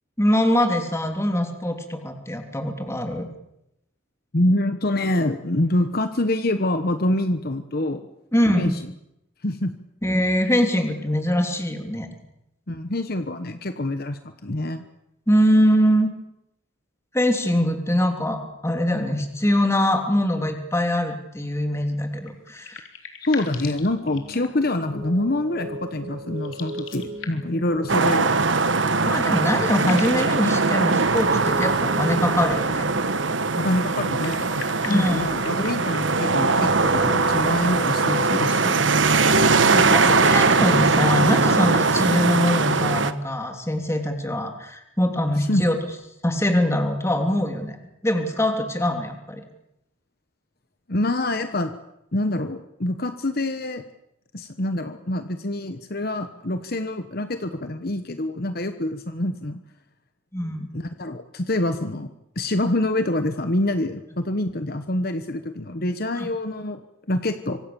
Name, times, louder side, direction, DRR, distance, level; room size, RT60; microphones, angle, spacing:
voice 1, 0.2-3.3 8.3-8.8 10.0-12.1 15.3-16.1 17.1-22.8 29.0-32.9 34.8-35.2 39.3-45.8 46.2-47.8 48.0-49.4 60.3-60.7 66.2-66.3, left 1 dB, 15° left, 4 dB, 3.2 m, -23 dB
voice 2, 4.3-8.0 8.6-8.8 9.4-9.7 12.7-14.8 23.2-28.4 33.6-34.5 34.9-38.8 45.4-45.7 50.9-51.7 52.1-53.8 54.3-59.6 60.7-66.8 67.1-67.6, left 1 dB, 50° left, 9 dB, 1.2 m, -26 dB
sound 1, 22.2-24.7 26.3-27.6 29.0-29.1 29.3-30.3 31.1-32.1 34.0-36.2, left 6 dB, 80° left, 3.5 m, -40 dB
sound 2, 23.8-42.3, left 1 dB, 40° right, 6.1 m, -38 dB
sound 3, 27.9-43.1, right 4 dB, 70° right, 1.3 m, -21 dB
25.5 x 25.0 x 7.1 m, 0.85 s
head